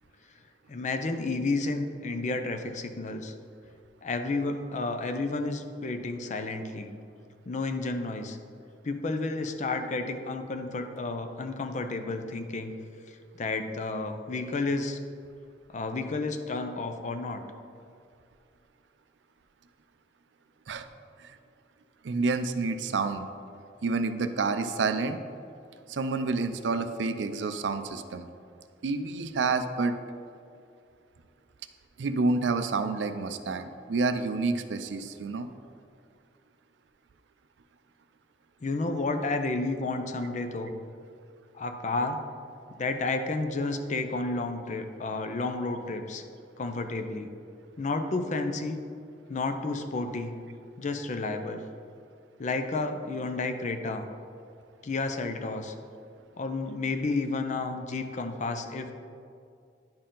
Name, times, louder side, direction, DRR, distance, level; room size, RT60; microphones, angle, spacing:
voice 1, 0.7-3.3 4.0-6.9 7.5-8.4 8.8-12.7 13.4-15.0 15.7-17.4 38.6-40.7 41.5-42.2 42.8-46.2 46.6-47.3 47.8-48.8 49.3-50.4 50.8-51.6 52.4-54.1 54.8-55.7 56.4-58.9, left 3 dB, 45° left, 7 dB, 0.5 m, -31 dB
voice 2, 22.0-23.3 23.8-25.2 25.9-28.3 28.8-29.9 32.0-35.5, right 3 dB, 75° right, 9 dB, 0.5 m, -29 dB
10.5 x 4.3 x 3.8 m, 2.4 s
head